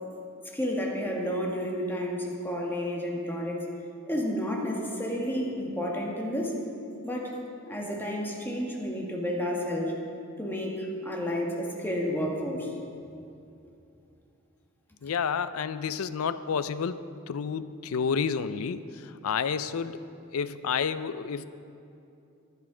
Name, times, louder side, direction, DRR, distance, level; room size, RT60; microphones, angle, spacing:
voice 1, 0.5-3.6 4.0-6.5 7.0-7.4 7.6-9.9 10.4-12.7, equal, 10° left, -1 dB, 1.5 m, -31 dB
voice 2, 15.0-20.0 20.3-21.4, left 6 dB, 75° left, 14 dB, 0.4 m, -30 dB
10.5 x 10.5 x 5.0 m, 2.7 s
head